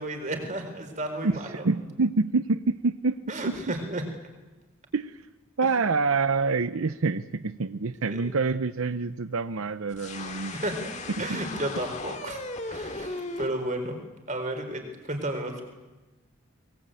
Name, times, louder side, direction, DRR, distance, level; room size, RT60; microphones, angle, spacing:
voice 1, 0.0-1.7 3.3-4.0 5.6-5.7 8.1-8.3 10.5-10.9 11.2-12.4 12.7-13.9 14.3-15.6, right 1 dB, 35° right, 5 dB, 4.5 m, -32 dB
voice 2, 1.6-3.2 3.5-3.6 4.9-5.2 5.6-10.6 11.3-11.4, right 4 dB, 85° right, 12 dB, 0.7 m, -26 dB
sound 1, 9.9-13.5, left 2 dB, 35° left, 2.1 m, -37 dB
23.5 x 21.5 x 9.1 m, 1.1 s
head